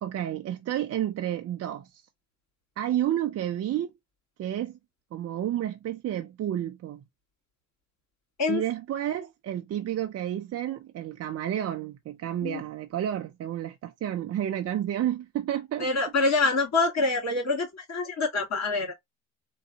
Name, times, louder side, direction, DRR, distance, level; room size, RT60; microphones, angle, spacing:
voice 1, 0.0-2.0 2.8-3.9 4.4-4.8 5.1-7.0 8.5-15.9, right 11 dB, 40° right, 0.5 m, -30 dB
voice 2, 15.8-18.9, left 3 dB, 45° left, 2.5 m, -26 dB
3.8 x 2.3 x 2.5 m
hypercardioid pair, 65°, 38 cm